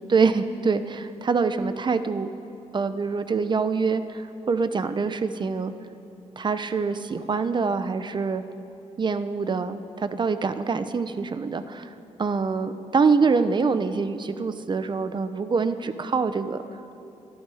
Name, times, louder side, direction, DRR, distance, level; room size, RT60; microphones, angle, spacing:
voice 1, 0.1-2.3 2.7-5.7 6.4-8.4 9.0-11.9 12.2-16.6, right 4 dB, 40° right, 11 dB, 0.7 m, -25 dB
23.5 x 11.5 x 4.9 m, 2.9 s
wide cardioid pair, 110°, 12 cm